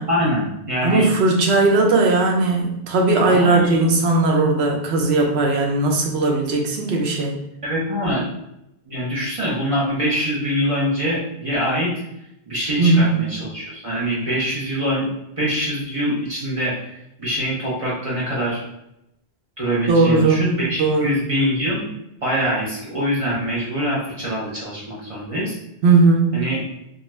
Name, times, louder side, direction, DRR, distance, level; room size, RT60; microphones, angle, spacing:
voice 1, 0.1-1.1 3.3-3.8 7.6-8.2 8.9-11.9 12.5-15.1 15.4-16.8 17.2-18.6 19.6-21.9 22.2-25.6 26.3-26.6, equal, 35° right, -6 dB, 0.7 m, -24 dB
voice 2, 0.8-7.4 12.8-13.1 19.9-21.2 25.8-26.5, right 3 dB, 90° right, 1 dB, 0.9 m, -18 dB
2.4 x 2.3 x 3.0 m, 0.83 s
omnidirectional pair, 1.1 m